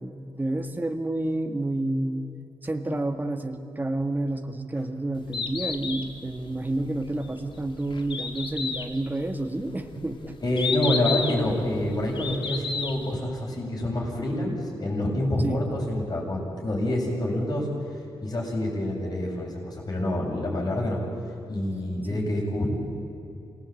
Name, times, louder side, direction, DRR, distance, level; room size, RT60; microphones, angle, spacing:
voice 1, 0.0-2.3 2.6-10.4 15.4-15.6 22.1-22.2, right 2 dB, 20° right, 6 dB, 1.8 m, -29 dB
Bird, 5.1-13.1, left 5 dB, 60° left, 2.5 m, -33 dB
voice 2, 10.4-17.7 18.2-21.0 21.5-22.7, left 1 dB, 45° left, -1 dB, 7.8 m, -27 dB
27.5 x 19.0 x 8.8 m, 2.9 s
cardioid pair, 85°, 10 cm